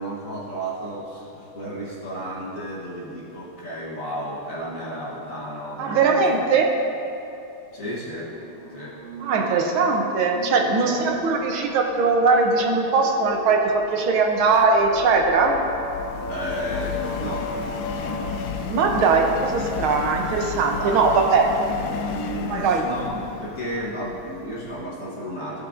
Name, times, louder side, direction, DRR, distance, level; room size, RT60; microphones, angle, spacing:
voice 1, 0.0-6.4 7.7-8.4 8.7-9.0 10.6-11.2 16.3-17.6 18.8-19.1 20.8-21.1 21.9-25.7, right 1 dB, 50° left, -6 dB, 1.1 m, -33 dB
voice 2, 5.8-6.8 9.2-15.6 18.7-21.5 22.5-22.9, right 4 dB, 75° right, 3 dB, 1.5 m, -20 dB
sound 1, 8.1-18.4, left 1 dB, 40° right, 1.9 m, -36 dB
Subway metro underground, 13.5-24.8, left 6 dB, 75° left, 1.4 m, -34 dB
14.5 x 6.7 x 2.5 m, 2.7 s
omnidirectional pair, 2.4 m